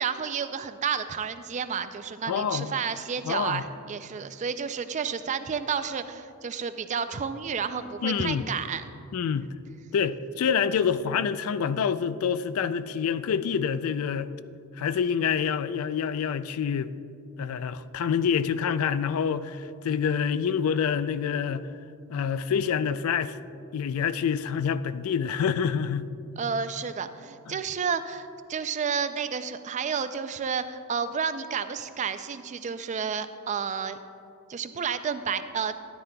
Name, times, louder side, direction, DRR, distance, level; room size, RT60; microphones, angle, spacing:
voice 1, 0.0-8.8 9.4-9.5 26.4-34.0 34.5-35.7, right 6 dB, 35° right, 0.3 m, -31 dB
voice 2, 2.3-2.7 3.2-3.6 8.0-8.4 9.1-9.5 9.9-14.3 14.8-16.9 17.4-21.7 22.1-23.4 23.7-26.1 27.5-27.6, left 7 dB, 80° left, 0.4 m, -27 dB
13.0 x 10.5 x 2.3 m
head